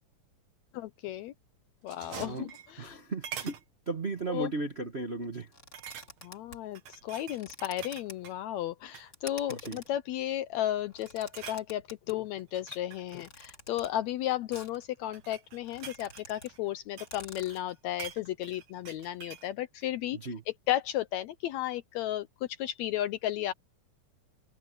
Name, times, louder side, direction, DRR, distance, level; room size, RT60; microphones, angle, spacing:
voice 1, 0.7-1.3 1.8-3.0 4.3-4.5 6.2-20.2 20.7-22.3 22.6-23.5, left 13 dB, 75° left, 1.7 m, -34 dB
sound 1, 1.8-3.2, right 6 dB, 90° right, 4.8 m, -46 dB
voice 2, 2.1-2.5 2.8-3.6 3.9-5.5 9.5-9.8 20.1-20.4, right 3 dB, 35° right, 0.9 m, -35 dB
sound 2, 2.1-3.0 3.2-3.7 4.2-4.4 4.7-4.8 5.7-6.4 6.8-8.4 8.8-9.1 9.5-10.0 10.5-10.8 11.1-11.7 12.4-14.0 14.8-17.2 17.5-19.5 19.8-19.9, right 9 dB, 60° right, 2.7 m, -46 dB
sound 3, 5.5-6.7 7.3-8.1 9.1-9.9 10.8-12.2 13.1-13.9 14.5-14.8 15.2-15.3 15.5-16.5 16.8-16.9 17.1-17.6, left 2 dB, 25° left, 5.2 m, -49 dB
omnidirectional pair, 3.6 m